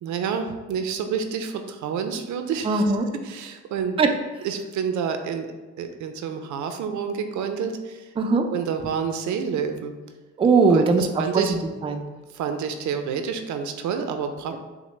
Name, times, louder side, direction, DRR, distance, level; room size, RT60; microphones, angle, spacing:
voice 1, 0.0-2.8 3.3-4.0 4.4-5.5 5.8-8.1 8.5-9.9 10.7-11.5 12.3-14.6, right 6 dB, 75° right, 7 dB, 0.5 m, -28 dB
voice 2, 2.6-3.1 4.0-4.1 8.2-8.5 10.4-12.0, right 4 dB, 20° right, 4 dB, 0.3 m, -20 dB
5.9 x 2.1 x 3.2 m, 1.2 s
cardioid pair, 90°, 30 cm